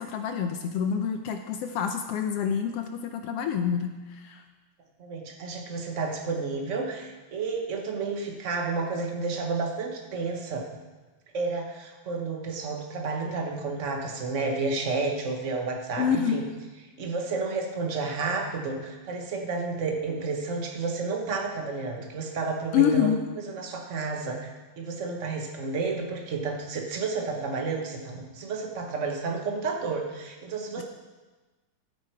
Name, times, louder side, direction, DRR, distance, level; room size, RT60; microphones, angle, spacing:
voice 1, 0.0-3.9 4.2-4.4 16.0-16.4 22.7-23.2, left 8 dB, 75° left, 6 dB, 1.4 m, -26 dB
voice 2, 5.0-10.7 11.3-16.4 17.0-23.1 23.5-30.8, right 4 dB, 55° right, 1 dB, 0.8 m, -31 dB
14.5 x 8.5 x 4.6 m, 1.2 s
omnidirectional pair, 3.4 m